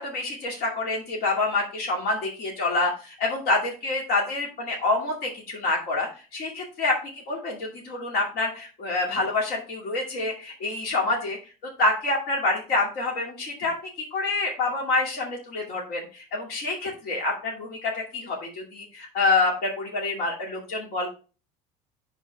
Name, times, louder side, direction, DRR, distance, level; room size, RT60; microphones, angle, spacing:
voice 1, 0.0-6.9 7.3-11.4 11.8-21.1, left 3 dB, 60° left, -2 dB, 2.4 m, -27 dB
10.5 x 4.0 x 3.5 m, 0.34 s
supercardioid pair, 105°, 18 cm